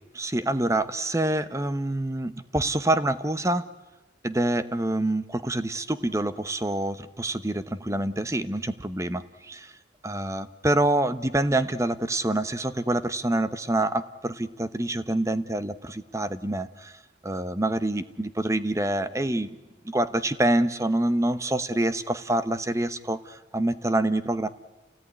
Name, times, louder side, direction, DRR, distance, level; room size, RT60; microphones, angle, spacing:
voice 1, 0.1-3.7 4.2-9.7 10.0-16.9 17.2-19.6 19.8-24.5, right 1 dB, 15° right, 13 dB, 0.9 m, -26 dB
29.0 x 17.5 x 9.7 m, 1.1 s
head